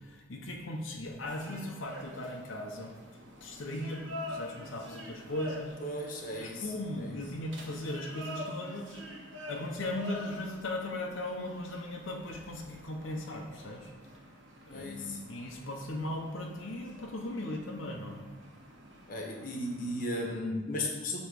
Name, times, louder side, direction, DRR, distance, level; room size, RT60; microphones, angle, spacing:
voice 1, 0.0-2.9 3.4-5.8 6.3-9.0 9.5-13.9 14.7-18.2, left 1 dB, 90° left, 1 dB, 0.9 m, -38 dB
sound 1, 1.2-20.4, equal, 75° right, 1.3 m, -47 dB
voice 2, 5.8-6.7 7.0-7.1 14.7-15.2 19.1-21.2, left 1 dB, 45° left, 0 dB, 1.1 m, -35 dB
8.0 x 3.2 x 6.2 m, 1.2 s
head